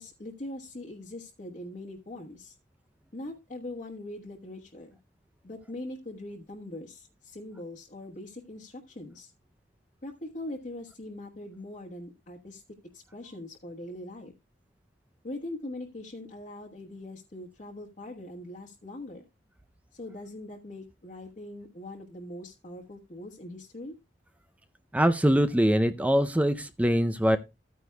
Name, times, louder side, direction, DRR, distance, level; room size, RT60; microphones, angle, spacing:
voice 1, 0.0-2.6 3.1-4.9 5.4-9.3 10.0-12.6 12.9-14.3 15.2-19.2 19.9-23.9, left 1 dB, 45° left, 1.3 m, -41 dB
voice 2, 24.9-27.4, equal, 10° right, 0.5 m, -23 dB
13.5 x 9.4 x 2.2 m
head